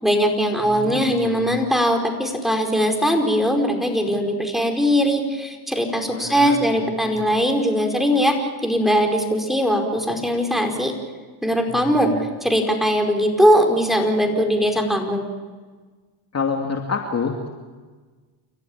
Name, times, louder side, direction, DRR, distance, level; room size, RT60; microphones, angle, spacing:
voice 1, 0.0-10.9 11.4-12.1 12.4-15.2, equal, ahead, 3 dB, 4.9 m, -20 dB
voice 2, 0.6-1.5 6.1-7.2 11.7-12.2 16.3-17.5, left 5 dB, 30° left, 3 dB, 2.6 m, -28 dB
29.5 x 14.5 x 8.8 m, 1.4 s
supercardioid pair, 90°, 50 cm